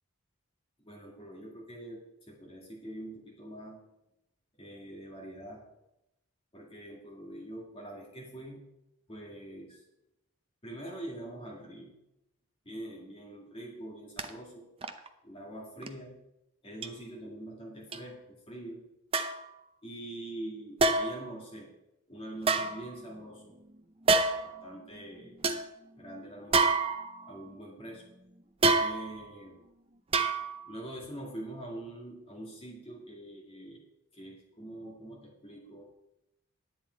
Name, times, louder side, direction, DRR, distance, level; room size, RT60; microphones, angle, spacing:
voice 1, 0.8-3.8 4.6-5.6 6.5-8.6 9.1-9.8 10.6-12.0 12.7-14.7 15.2-16.2 16.6-18.8 19.8-21.7 22.1-23.6 24.4-25.3 26.0-26.8 27.2-28.0 28.8-29.6 30.7-33.8 34.1-35.9, right 1 dB, 25° left, -2 dB, 2.0 m, -44 dB
sound 1, 14.2-14.3 14.8-15.1 15.8-15.9 16.8-16.9 17.9-18.0 19.1-19.5 20.8-21.3 22.4-23.3 24.1-24.6 25.0-25.1 25.4-25.6 26.5-27.4 28.6-29.3 30.1-30.7 31.0-31.1, right 3 dB, 25° right, 0.5 m, -27 dB
10.5 x 8.9 x 4.5 m, 0.90 s
head